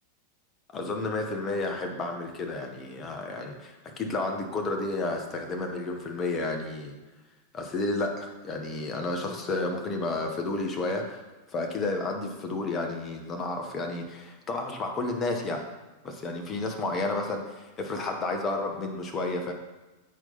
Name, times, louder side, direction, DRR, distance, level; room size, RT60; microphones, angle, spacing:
voice 1, 0.7-6.9 7.5-15.6 16.0-19.5, left 2 dB, 25° left, 3 dB, 1.1 m, -31 dB
8.4 x 4.5 x 4.1 m, 1.1 s
figure-of-eight pair, 90°, 0 cm